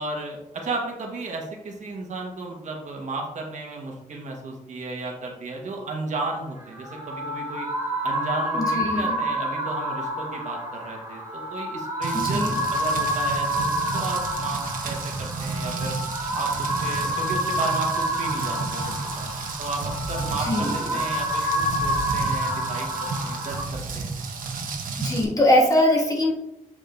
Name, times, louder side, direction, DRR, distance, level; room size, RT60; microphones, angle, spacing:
voice 1, 0.0-7.7 8.0-16.0 16.3-19.3 19.6-21.5 21.8-24.1, right 3 dB, 60° right, 0 dB, 1.3 m, -34 dB
sound 1, 6.6-23.6, equal, 20° right, 2.3 m, -28 dB
voice 2, 8.6-9.2 12.1-12.6 20.4-21.0 25.0-26.3, left 1 dB, 25° left, -3 dB, 1.8 m, -22 dB
Rain, 12.0-25.2, right 4 dB, 85° right, 1.0 m, -32 dB
7.2 x 5.1 x 2.6 m, 0.83 s
cardioid pair, 105°, 14 cm